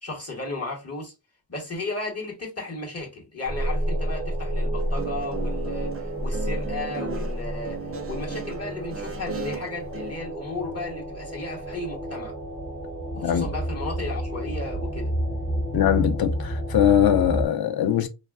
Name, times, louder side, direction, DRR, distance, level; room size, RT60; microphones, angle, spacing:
voice 1, 0.0-1.1 1.5-5.9 6.2-12.3 13.1-15.1, left 2 dB, 35° left, 1.1 m, -34 dB
sound 1, 3.5-17.5, equal, 20° left, 0.7 m, -30 dB
Guitar, 4.8-10.1, right 4 dB, 30° right, 0.4 m, -36 dB
voice 2, 15.7-18.1, left 10 dB, 55° left, 0.5 m, -21 dB
3.2 x 2.4 x 2.3 m
wide cardioid pair, 130°, 44 cm